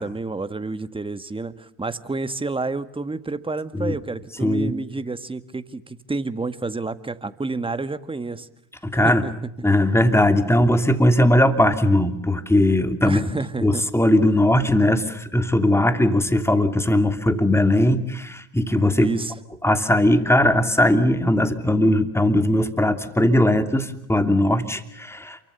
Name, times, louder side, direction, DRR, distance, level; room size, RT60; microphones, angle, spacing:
voice 1, 0.0-8.5 9.0-9.3 9.6-9.8 13.0-13.8 19.0-19.3, right 3 dB, 15° right, 12 dB, 1.8 m, -29 dB
voice 2, 4.4-4.7 8.8-9.2 9.6-13.3 13.6-19.1 19.6-25.4, left 1 dB, 5° left, 8 dB, 3.0 m, -19 dB
28.5 x 24.0 x 6.9 m, 0.77 s
supercardioid pair, 85°, 36 cm